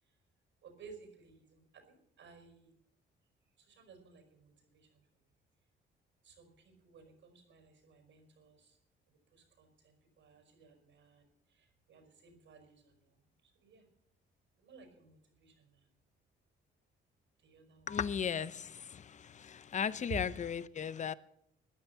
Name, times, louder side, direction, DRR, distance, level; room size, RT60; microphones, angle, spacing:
voice 1, 0.6-2.7 3.6-4.9 6.2-8.8 9.3-11.2 11.5-13.1 13.6-13.8 14.6-15.7 17.4-17.9, right 5 dB, 70° right, 5.1 m, -59 dB
voice 2, 17.9-18.5 19.7-21.1, left 7 dB, 35° left, 0.7 m, -34 dB
14.0 x 10.0 x 7.3 m
cardioid pair, 90°, 20 cm